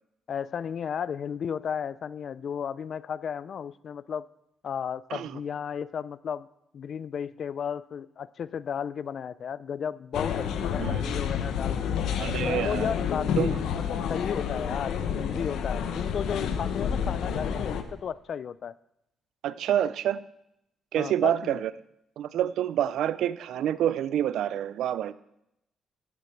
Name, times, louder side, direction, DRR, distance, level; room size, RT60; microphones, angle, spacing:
voice 1, 0.3-4.3 4.6-6.5 6.7-12.0 12.4-18.7 21.0-21.6, left 7 dB, 55° left, 18 dB, 0.4 m, -34 dB
sound 1, 10.1-17.8, left 7 dB, 80° left, 1.0 m, -29 dB
voice 2, 12.2-12.9 13.4-13.6 19.4-20.2 20.9-21.7 22.2-25.1, right 11 dB, 80° right, 16 dB, 0.4 m, -27 dB
15.5 x 6.8 x 4.6 m, 0.82 s
cardioid pair, 90°, 0 cm